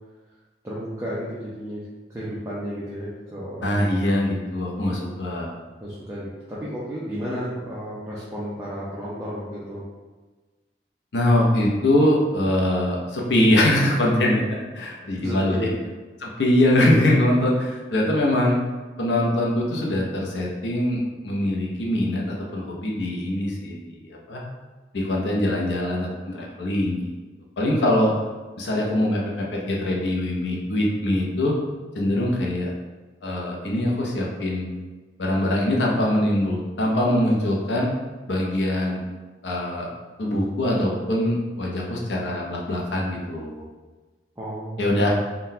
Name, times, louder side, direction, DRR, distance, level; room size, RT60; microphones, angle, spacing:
voice 1, 0.6-1.8 2.1-3.8 5.8-9.8 15.2-15.7 44.4-44.9, equal, 15° right, -8 dB, 0.5 m, -33 dB
voice 2, 3.6-5.5 11.1-15.7 16.2-18.6 19.0-24.4 24.9-27.0 27.6-28.1 28.6-31.6 31.9-32.7 33.2-34.7 35.2-37.9 38.3-39.0 39.4-39.9 40.2-43.6 44.8-45.1, left 1 dB, 85° left, -2 dB, 0.6 m, -23 dB
3.7 x 2.2 x 2.7 m, 1.3 s
head